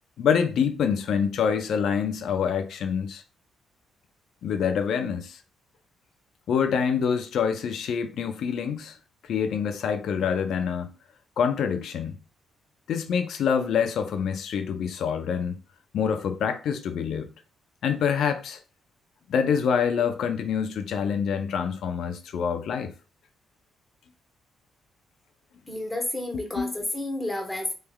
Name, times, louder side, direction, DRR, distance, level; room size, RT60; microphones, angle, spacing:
voice 1, 0.2-3.2 4.4-5.4 6.5-9.0 9.3-10.9 11.4-12.1 12.9-15.6 15.9-17.3 17.8-18.6 19.3-22.9 26.3-26.7, left 7 dB, 70° left, 0.6 m, -26 dB
voice 2, 25.7-27.7, left 1 dB, 15° left, 1.1 m, -30 dB
3.3 x 3.2 x 2.3 m
cardioid pair, 90°, 0 cm